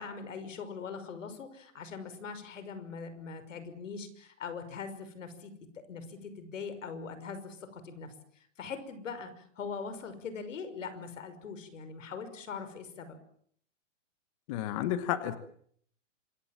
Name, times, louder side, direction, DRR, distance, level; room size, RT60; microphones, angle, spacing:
voice 1, 0.0-5.5 5.9-13.2, left 5 dB, 80° left, 11 dB, 5.8 m, -42 dB
voice 2, 14.5-15.4, left 11 dB, 25° left, 11 dB, 1.3 m, -31 dB
26.5 x 23.5 x 7.4 m, 0.63 s
hypercardioid pair, 170°, 37 cm